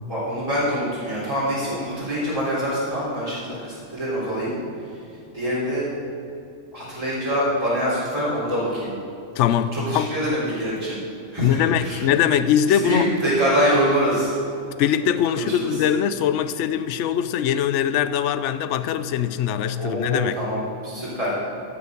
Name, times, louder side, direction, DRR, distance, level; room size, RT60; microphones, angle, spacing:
voice 1, 0.1-4.6 5.3-5.9 6.7-8.9 9.7-11.0 11.3-12.0 12.6-14.3 15.3-15.8 19.7-21.3, equal, 20° right, -10 dB, 3.7 m, -25 dB
voice 2, 9.4-10.1 11.4-13.1 14.8-20.4, left 9 dB, 70° left, 12 dB, 0.9 m, -22 dB
14.0 x 7.1 x 6.4 m, 2.6 s
omnidirectional pair, 1.3 m